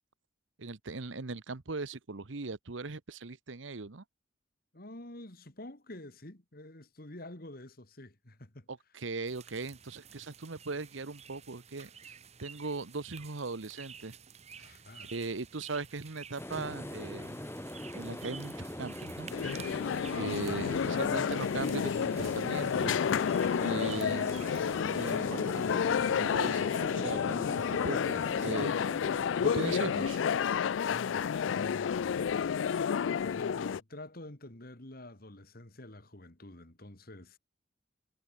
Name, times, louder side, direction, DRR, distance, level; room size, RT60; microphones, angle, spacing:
voice 1, 0.6-4.0 8.7-14.2 14.6-14.8 15.1-17.4 17.9-19.3 20.1-23.0 23.6-24.6 24.9-25.8 26.1-29.1 29.4-30.2, right 3 dB, 80° right, 1.1 m, -39 dB
voice 2, 4.7-8.7 14.6-15.2 20.3-20.9 30.9-32.6 33.2-37.4, left 1 dB, 50° left, 2.5 m, -48 dB
sound 1, 9.3-25.2, right 7 dB, 35° right, 1.4 m, -52 dB
sound 2, 16.4-31.1, left 1 dB, 15° left, 1.5 m, -42 dB
sound 3, 19.3-33.8, left 7 dB, 80° left, 0.4 m, -30 dB
head